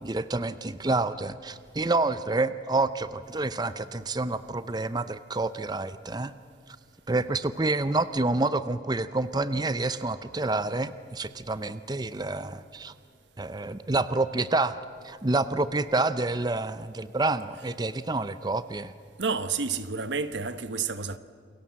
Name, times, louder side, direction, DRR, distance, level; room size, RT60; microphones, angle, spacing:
voice 1, 0.0-6.3 7.1-12.9 13.4-18.9, right 2 dB, 25° right, 0.6 m, -28 dB
voice 2, 19.2-21.2, right 5 dB, 80° right, 1.2 m, -30 dB
29.0 x 22.0 x 7.5 m
head